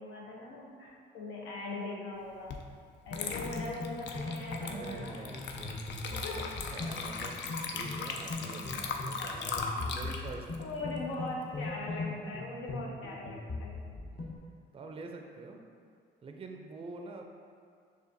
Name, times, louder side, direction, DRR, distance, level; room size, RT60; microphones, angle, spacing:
voice 1, 0.0-2.6 3.1-5.2 6.1-6.5 9.2-9.9 10.6-13.8, left 2 dB, 85° left, -2 dB, 0.8 m, -41 dB
Water / Liquid, 2.5-2.7 3.1-11.6, left 5 dB, 65° left, 0.4 m, -39 dB
sound 1, 3.1-14.4, left 2 dB, 40° left, 0.8 m, -40 dB
voice 2, 4.6-11.0 14.1-14.3 14.7-15.6 16.2-17.2, right 3 dB, 30° right, 3 dB, 0.4 m, -46 dB
6.6 x 2.5 x 2.6 m, 2.2 s
cardioid pair, 90°, 20 cm